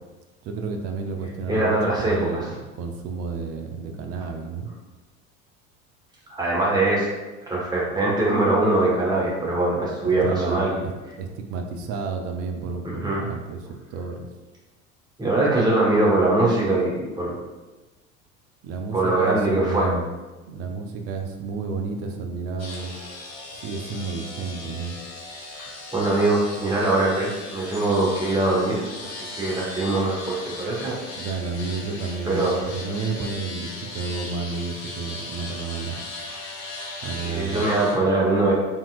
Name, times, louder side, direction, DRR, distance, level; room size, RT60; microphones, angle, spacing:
voice 1, 0.4-4.7 10.2-10.9 11.2-14.3 18.6-20.0 20.5-22.9 23.5-25.0 30.8-36.0 37.0-37.6, right 4 dB, 35° right, 3 dB, 0.7 m, -31 dB
voice 2, 1.5-2.4 6.3-7.1 7.5-10.8 12.8-13.3 15.2-17.4 18.9-19.9 25.6-31.0 32.2-32.6 37.2-38.5, right 2 dB, 10° right, -5 dB, 1.4 m, -22 dB
sound 1, 22.6-37.9, left 2 dB, 40° left, 1.1 m, -37 dB
4.6 x 3.6 x 2.5 m, 1.2 s
figure-of-eight pair, 70°, 40 cm